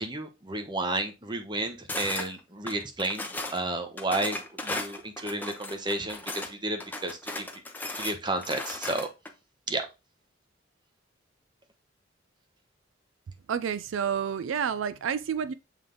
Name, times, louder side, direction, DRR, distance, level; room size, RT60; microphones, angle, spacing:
voice 1, 0.0-3.3 3.5-7.5 8.0-9.1 9.7-9.9, right 2 dB, 25° right, 0.9 m, -32 dB
sound 1, 1.9-2.3 2.7-3.6 4.0-6.5 6.8-9.3, left 2 dB, 10° left, 0.7 m, -36 dB
voice 2, 13.5-15.5, right 7 dB, 80° right, 0.4 m, -29 dB
7.3 x 3.4 x 3.8 m
head